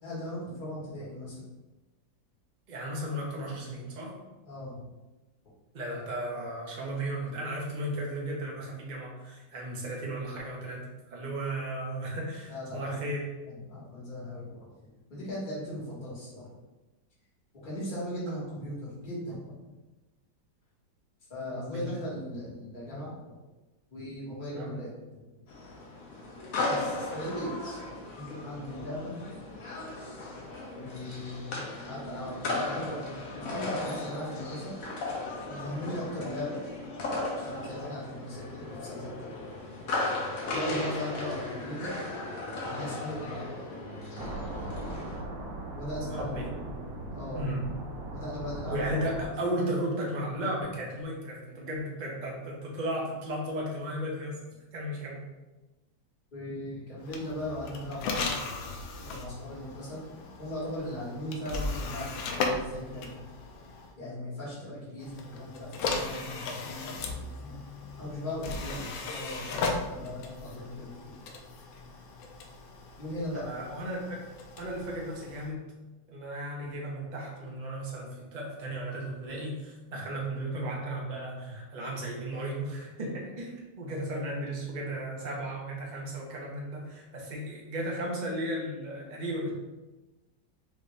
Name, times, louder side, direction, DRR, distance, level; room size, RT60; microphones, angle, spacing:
voice 1, 0.0-1.4 4.5-4.9 12.5-13.0 13.5-14.7 15.1-16.5 17.5-19.5 21.3-23.1 23.9-25.2 26.7-27.5 28.1-29.4 30.7-34.7 35.5-36.6 37.4-39.3 40.5-42.0 42.6-43.5 45.7-46.4 47.1-47.5 48.1-48.9 56.3-58.4 59.0-63.2 64.0-67.6 68.0-71.2 73.0-73.5, left 1 dB, 25° left, -8 dB, 1.5 m, -38 dB
voice 2, 2.7-4.2 5.7-13.3 21.5-21.9 24.5-24.8 46.1-46.5 47.3-47.6 48.7-54.4 54.7-55.3 73.3-74.0 74.6-75.6 76.1-89.5, right 1 dB, 40° right, -3 dB, 0.6 m, -35 dB
sound 1, 25.5-45.2, left 2 dB, 55° left, 1.0 m, -36 dB
sound 2, 44.2-49.2, right 1 dB, 70° right, 1.5 m, -39 dB
sound 3, 57.0-63.9 65.0-75.5, left 3 dB, 85° left, 1.3 m, -37 dB
4.9 x 2.7 x 3.3 m, 1.1 s
omnidirectional pair, 2.1 m